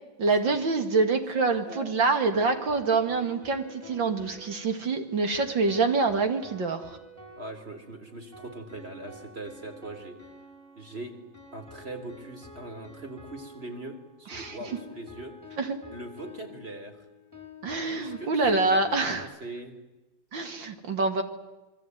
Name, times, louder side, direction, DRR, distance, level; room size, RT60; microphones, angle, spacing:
voice 1, 0.2-7.0 14.3-14.6 15.6-15.8 17.6-19.3 20.3-21.2, right 3 dB, 65° right, 7 dB, 2.9 m, -26 dB
sound 1, 1.5-19.2, left 2 dB, 10° right, 6.1 m, -49 dB
voice 2, 7.4-10.2 10.8-11.2 11.5-15.4 15.9-17.0 17.9-19.8, right 2 dB, 30° right, 5 dB, 3.6 m, -41 dB
27.0 x 23.0 x 9.4 m, 1.1 s
omnidirectional pair, 2.3 m